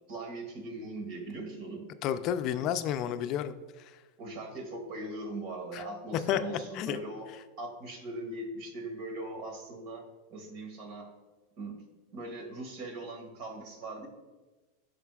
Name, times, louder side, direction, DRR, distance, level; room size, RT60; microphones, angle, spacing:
voice 1, 0.1-1.9 4.2-7.3 7.6-11.1 11.6-11.8 12.1-14.1, right 2 dB, 60° right, 3 dB, 2.0 m, -40 dB
voice 2, 2.0-3.6 5.7-5.8 6.3-7.0, left 10 dB, 50° left, 10 dB, 0.5 m, -31 dB
14.0 x 5.1 x 2.4 m, 1.2 s
hypercardioid pair, 110°, 0 cm